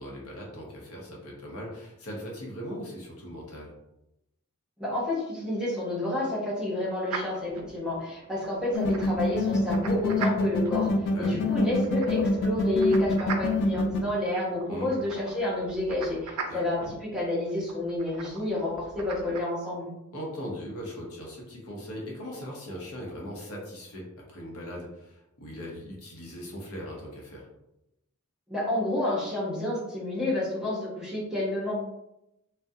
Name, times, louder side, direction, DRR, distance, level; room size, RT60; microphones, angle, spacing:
voice 1, 0.0-3.7 11.1-11.4 14.7-14.9 16.5-16.9 20.1-27.5, equal, 70° left, -2 dB, 0.7 m, -39 dB
voice 2, 4.8-10.9 11.2-19.9 28.5-31.7, left 1 dB, 5° right, -7 dB, 0.6 m, -29 dB
sound 1, 7.1-19.4, right 4 dB, 75° right, 0.4 m, -41 dB
sound 2, 8.7-14.0, left 3 dB, 50° left, 0.3 m, -25 dB
2.3 x 2.1 x 2.6 m, 0.88 s
head